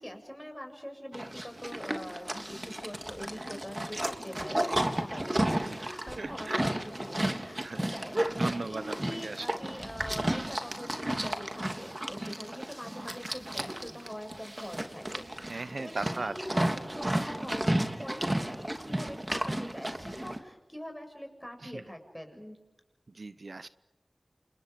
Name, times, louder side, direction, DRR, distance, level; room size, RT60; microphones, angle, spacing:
voice 1, 0.0-22.6, equal, 5° left, 4 dB, 7.3 m, -44 dB
Livestock farm animals working animals, 1.1-20.4, right 1 dB, 25° right, 3.1 m, -33 dB
voice 2, 6.2-6.6 7.6-7.8 8.3-9.0 9.2-9.7 15.4-16.3 21.6-21.8 23.1-23.7, right 3 dB, 75° right, 13 dB, 0.9 m, -37 dB
29.5 x 28.5 x 5.2 m, 1.0 s
wide cardioid pair, 45°, 0 cm